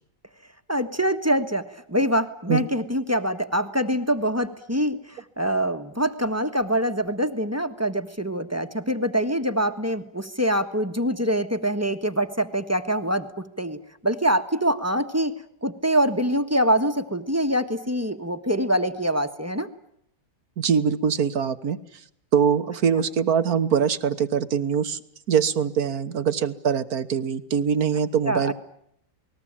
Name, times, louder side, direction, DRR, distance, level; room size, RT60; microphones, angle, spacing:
voice 1, 0.7-13.3 13.6-15.3 15.6-19.7 28.3-28.5, equal, 10° right, 8 dB, 1.3 m, -24 dB
voice 2, 20.6-21.8 22.3-25.0 25.3-28.5, right 7 dB, 65° right, 12 dB, 1.7 m, -23 dB
28.5 x 20.0 x 8.9 m, 0.72 s
omnidirectional pair, 1.7 m